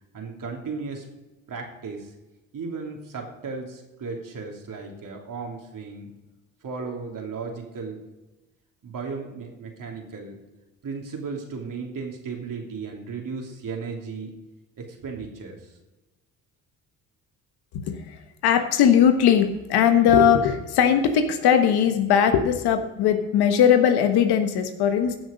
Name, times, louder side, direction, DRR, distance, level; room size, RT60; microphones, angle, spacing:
voice 1, 0.1-1.0 1.5-2.1 2.5-6.1 6.6-8.0 8.8-10.4 10.8-14.3 14.8-15.7, right 4 dB, 55° right, 1 dB, 3.2 m, -35 dB
voice 2, 17.7-25.2, left 8 dB, 70° left, 7 dB, 1.4 m, -19 dB
15.5 x 6.3 x 5.2 m, 1.1 s
hypercardioid pair, 55°, 39 cm